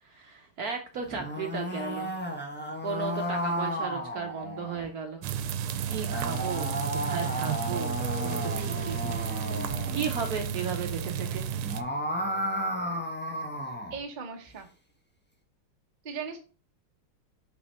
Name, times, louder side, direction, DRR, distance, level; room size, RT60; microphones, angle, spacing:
voice 1, 0.0-2.1 2.8-5.3 5.8-6.7 7.0-8.0 8.2-9.2 9.9-11.5, right 6 dB, 60° right, 3 dB, 1.1 m, -35 dB
sound 1, 1.0-4.9 5.9-10.1 11.5-14.0, equal, 10° left, 0.5 m, -33 dB
sound 2, 5.2-11.8, right 8 dB, 90° right, 1.5 m, -32 dB
sound 3, 8.0-12.9, left 7 dB, 75° left, 1.6 m, -46 dB
voice 2, 13.9-14.7 16.0-16.4, right 5 dB, 35° right, 4 dB, 0.7 m, -37 dB
5.9 x 4.1 x 5.5 m, 0.37 s
omnidirectional pair, 2.3 m